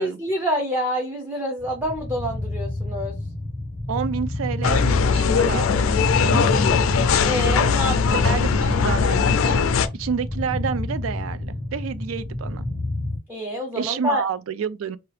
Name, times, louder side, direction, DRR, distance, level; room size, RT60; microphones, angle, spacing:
voice 1, 0.0-3.1 7.2-8.2 13.3-14.2, equal, 10° right, 0.5 m, -27 dB
sound 1, 1.6-13.2, left 1 dB, 55° right, 1.7 m, -30 dB
voice 2, 3.9-6.5 8.1-9.6 9.9-12.7 13.8-15.0, right 6 dB, 75° right, 0.4 m, -29 dB
sound 2, 4.6-9.9, left 5 dB, 80° left, 0.4 m, -20 dB
2.8 x 2.4 x 3.2 m
head